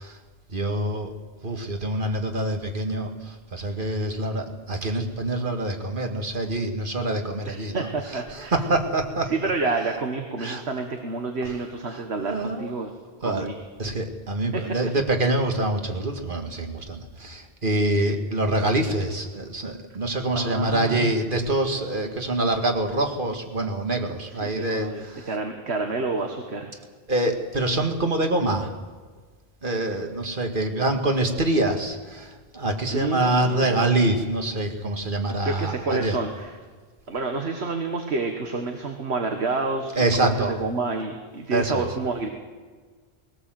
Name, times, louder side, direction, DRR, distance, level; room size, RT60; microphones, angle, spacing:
voice 1, 0.5-1.1 1.4-3.1 3.5-7.8 8.5-9.3 10.4-10.6 12.3-12.7 13.2-13.5 13.8-25.3 27.1-28.7 29.6-32.3 32.5-36.1 40.0-40.5 41.5-41.8, right 1 dB, 55° right, 4 dB, 2.1 m, -25 dB
voice 2, 7.5-8.5 9.2-12.9 13.2-13.6 14.5-14.6 17.9-18.2 20.4-21.2 24.3-26.7 32.9-34.0 35.4-36.6 37.1-42.3, right 3 dB, 85° right, 4 dB, 1.8 m, -29 dB
21.0 x 17.5 x 7.7 m, 1.5 s
omnidirectional pair, 1.1 m